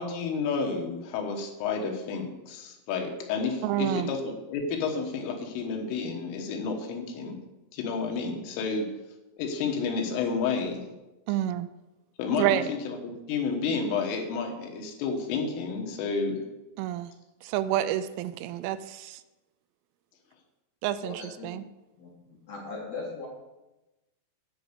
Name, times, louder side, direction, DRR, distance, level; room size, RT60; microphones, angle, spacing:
voice 1, 0.0-7.4 7.7-8.9 9.4-10.8 12.2-16.4, left 5 dB, 80° left, 3 dB, 3.8 m, -30 dB
voice 2, 3.6-4.1 11.3-11.7 12.4-12.6 16.8-17.1 17.5-18.8 20.8-21.6, right 13 dB, 85° right, 13 dB, 3.0 m, -28 dB
voice 3, 21.0-21.5 22.0-22.1 22.5-23.3, left 3 dB, 50° left, -3 dB, 2.2 m, -38 dB
10.0 x 5.4 x 8.1 m, 1.0 s
omnidirectional pair, 5.8 m